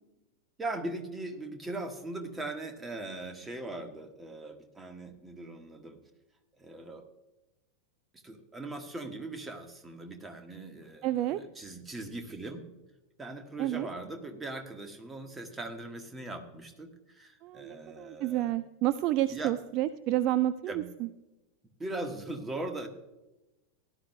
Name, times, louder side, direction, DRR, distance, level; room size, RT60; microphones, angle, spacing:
voice 1, 0.6-6.0 6.6-7.0 8.1-12.6 13.2-18.5 19.3-19.5 20.7-20.9 21.8-22.9, right 2 dB, 15° right, 6 dB, 1.5 m, -40 dB
voice 2, 11.0-11.4 13.6-13.9 17.4-20.8, right 14 dB, 40° right, 13 dB, 0.4 m, -29 dB
17.0 x 12.0 x 2.2 m, 1.0 s
figure-of-eight pair, 90°, 0 cm